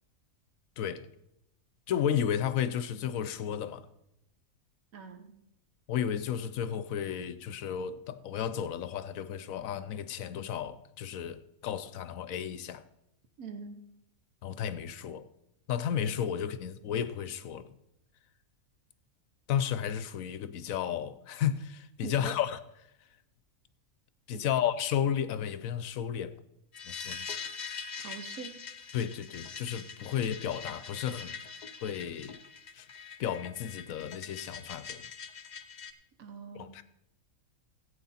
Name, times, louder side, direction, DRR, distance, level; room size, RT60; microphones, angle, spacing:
voice 1, 0.8-1.1 1.9-3.9 5.9-12.8 14.4-15.3 15.7-17.7 19.5-22.6 24.3-26.3 26.9-27.3 28.9-31.4 31.8-32.4 32.7-32.9 33.2-35.1 36.5-36.8, left 9 dB, 75° left, 1.1 m, -33 dB
voice 2, 4.9-5.3 13.4-13.8 22.0-22.3 24.3-24.5 28.0-28.6 36.2-36.8, right 5 dB, 70° right, 1.5 m, -43 dB
sound 1, 26.7-35.9, left 6 dB, 45° left, 0.6 m, -43 dB
15.5 x 8.4 x 4.2 m
omnidirectional pair, 1.5 m